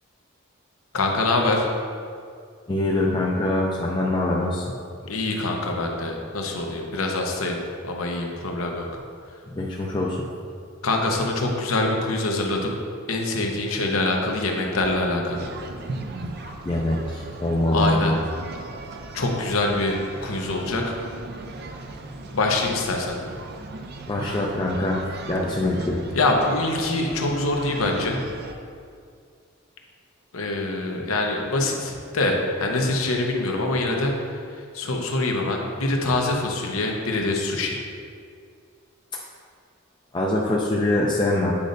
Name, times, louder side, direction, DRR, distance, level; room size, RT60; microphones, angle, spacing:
voice 1, 0.9-1.7 5.0-7.6 7.8-8.9 10.8-12.8 13.1-15.5 17.7-18.1 19.1-20.9 22.3-23.2 26.1-28.2 30.3-37.8, left 2 dB, 80° left, 1 dB, 0.8 m, -24 dB
voice 2, 2.7-4.8 9.5-10.2 16.4-18.2 24.1-26.0 40.1-41.5, left 1 dB, 20° left, -3 dB, 0.4 m, -24 dB
sound 1, 15.3-28.5, right 3 dB, 50° right, 0.4 m, -37 dB
8.4 x 5.1 x 2.6 m, 2.3 s
head